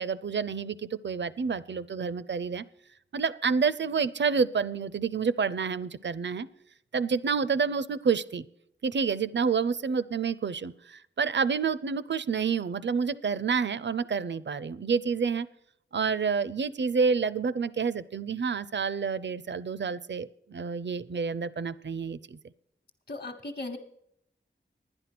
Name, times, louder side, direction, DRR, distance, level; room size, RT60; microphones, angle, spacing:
voice 1, 0.0-2.6 3.1-6.5 6.9-8.4 8.8-15.5 15.9-22.4, right 5 dB, 65° right, 16 dB, 0.5 m, -28 dB
voice 2, 23.1-23.8, left 2 dB, 50° left, 0 dB, 1.0 m, -37 dB
11.0 x 9.9 x 6.0 m, 0.73 s
wide cardioid pair, 55°, 20 cm